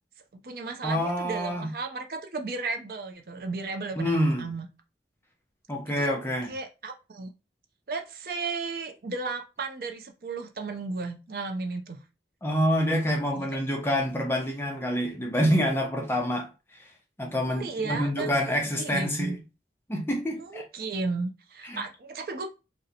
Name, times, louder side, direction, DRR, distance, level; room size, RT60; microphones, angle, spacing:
voice 1, 0.3-4.7 6.0-6.1 6.5-7.3 7.9-12.0 13.3-13.6 17.3-19.4 20.4-22.5, right 3 dB, 55° right, 0.5 m, -34 dB
voice 2, 0.8-1.7 4.0-4.5 5.7-6.5 12.4-16.5 17.2-19.4 19.9-20.6 21.7-21.8, equal, 15° left, 0.6 m, -27 dB
2.7 x 2.2 x 3.9 m
head